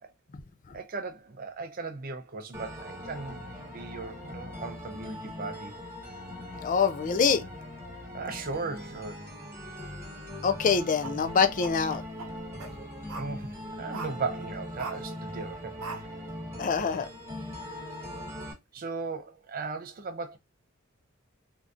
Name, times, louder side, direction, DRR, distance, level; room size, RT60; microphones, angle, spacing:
voice 1, 0.7-5.7 8.1-9.2 13.1-15.8 18.7-20.4, right 4 dB, 40° right, 0.5 m, -37 dB
sound 1, 2.5-18.5, left 1 dB, 10° right, 1.1 m, -41 dB
voice 2, 6.6-7.5 10.4-12.0 16.6-17.1, left 6 dB, 40° left, 0.4 m, -25 dB
sound 2, 11.0-12.7 13.1-13.3 13.9-14.2 14.8-15.0 15.8-16.0, right 4 dB, 85° right, 0.8 m, -39 dB
3.5 x 2.6 x 2.4 m
head